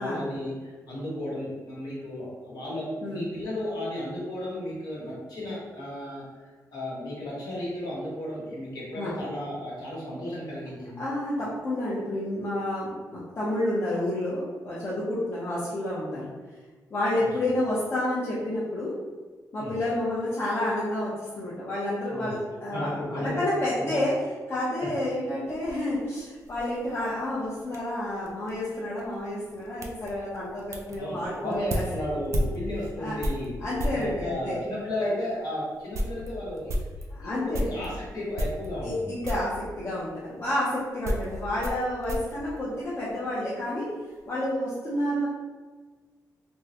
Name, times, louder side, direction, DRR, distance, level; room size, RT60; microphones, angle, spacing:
voice 1, 0.0-6.2 6.7-11.0 17.2-17.3 19.6-19.7 22.1-22.3 22.7-23.5 23.8-24.0 31.0-33.6 33.9-36.8 37.2-39.1, left 1 dB, 70° left, -6 dB, 1.1 m, -34 dB
voice 2, 11.0-16.3 16.9-19.0 19.5-24.2 24.5-31.8 32.1-32.2 33.0-33.2 33.6-34.6 37.2-37.7 38.8-43.9 44.3-45.3, left 1 dB, 35° left, -8 dB, 0.6 m, -30 dB
sound 1, 25.5-34.1 34.8-34.9 35.4-35.5 35.7-37.9 38.3-39.0 39.2-39.6 40.4-43.3 43.6-44.2, equal, 45° right, 0.4 m, -34 dB
3.5 x 2.1 x 2.8 m, 1.4 s
wide cardioid pair, 155°, 7 cm